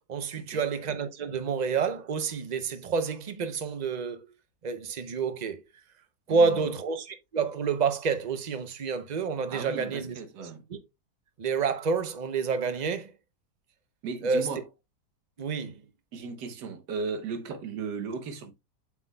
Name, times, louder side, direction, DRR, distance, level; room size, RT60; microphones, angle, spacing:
voice 1, 0.1-4.3 4.6-5.6 6.3-10.8 11.4-13.1 14.2-14.5 15.4-15.8, right 5 dB, 65° right, 0.4 m, -29 dB
voice 2, 6.3-6.7 9.5-10.6 14.0-14.6 16.1-18.5, right 5 dB, 80° right, 1.6 m, -36 dB
7.7 x 5.9 x 2.2 m
omnidirectional pair, 1.8 m